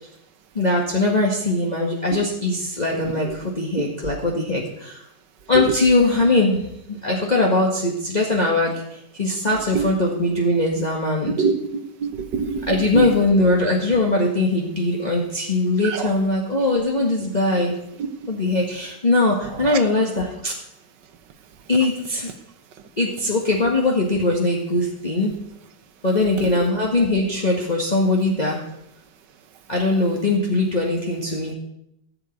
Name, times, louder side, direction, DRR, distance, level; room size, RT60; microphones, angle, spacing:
voice 1, 0.5-5.0 5.5-11.4 12.7-17.8 18.3-20.5 21.7-22.3 23.0-25.4 26.0-28.6 29.7-31.5, left 2 dB, 25° left, -2 dB, 1.7 m, -21 dB
voice 2, 12.0-13.1 15.8-16.1 26.4-26.5, right 6 dB, 70° right, 10 dB, 1.6 m, -24 dB
15.0 x 5.9 x 9.2 m, 0.79 s
omnidirectional pair, 2.0 m